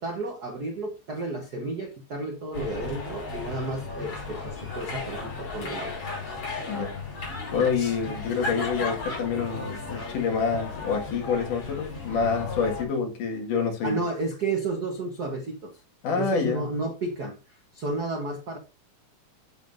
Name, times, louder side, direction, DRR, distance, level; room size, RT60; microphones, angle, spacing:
voice 1, 0.0-6.0 7.6-7.7 8.0-8.1 13.8-15.8 16.1-18.6, right 2 dB, 90° right, 0.8 m, -32 dB
sound 1, 2.5-12.9, left 3 dB, 55° left, 5.1 m, -35 dB
voice 2, 7.5-14.0 16.0-16.7, left 5 dB, 75° left, 3.4 m, -27 dB
8.9 x 7.4 x 2.6 m
omnidirectional pair, 3.7 m